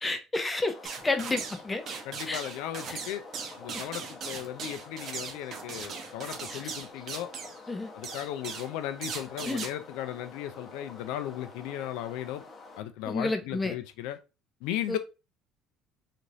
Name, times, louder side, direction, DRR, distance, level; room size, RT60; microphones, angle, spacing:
voice 1, 0.0-0.8 1.0-1.8 2.3-2.4 2.9-3.0 6.5-6.7 7.7-7.9 9.5-9.7 13.1-13.7 14.9-15.0, left 2 dB, 15° left, 0.5 m, -30 dB
sound 1, 0.6-12.8, left 3 dB, 35° left, 0.9 m, -48 dB
sound 2, 0.8-1.6 1.9-7.6 8.0-8.7 9.0-9.7, right 5 dB, 50° right, 0.7 m, -39 dB
voice 2, 2.1-3.3 3.6-7.3 7.9-12.4 12.8-14.2 14.6-15.0, left 12 dB, 80° left, 0.3 m, -36 dB
3.0 x 2.5 x 2.6 m
supercardioid pair, 105°, 0 cm